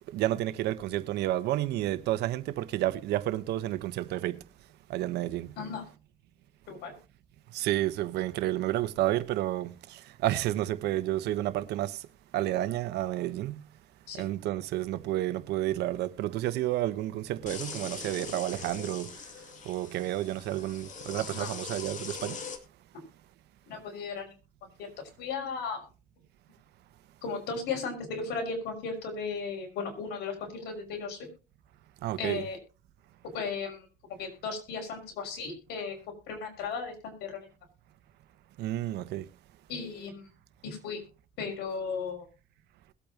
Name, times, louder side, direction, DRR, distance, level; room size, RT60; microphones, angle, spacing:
voice 1, 0.1-4.4 4.9-5.5 7.5-12.0 12.3-13.6 14.2-19.1 19.6-22.4 32.0-32.4 38.6-39.3, right 14 dB, 80° right, 1.1 m, -30 dB
sound 1, 17.5-22.6, left 5 dB, 45° left, 2.5 m, -41 dB
voice 2, 23.7-24.3 24.8-24.9 25.2-25.8 27.2-31.2 32.2-32.6 33.3-33.9 34.2-36.0 36.3-37.5 39.7-40.3 40.6-41.0 41.4-42.3, left 5 dB, 80° left, 5.9 m, -35 dB
21.5 x 8.6 x 2.9 m
cardioid pair, 110°, 17 cm